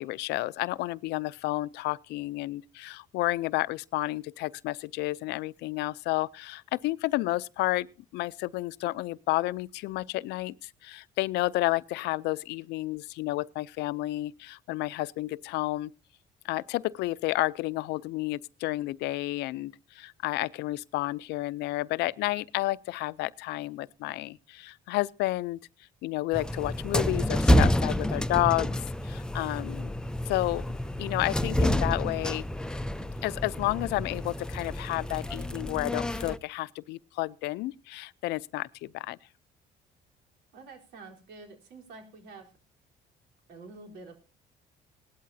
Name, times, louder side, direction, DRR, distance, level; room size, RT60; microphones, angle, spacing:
voice 1, 0.0-7.9 8.1-15.9 16.4-25.6 26.0-28.8 29.0-29.9 30.3-30.7 31.0-32.4 33.2-39.2, left 18 dB, 85° left, 0.5 m, -31 dB
sound 1, 26.3-36.4, equal, 5° left, 0.6 m, -28 dB
voice 2, 40.5-42.5 43.5-44.2, right 3 dB, 85° right, 3.9 m, -48 dB
18.5 x 12.5 x 2.7 m
cardioid pair, 110°, 17 cm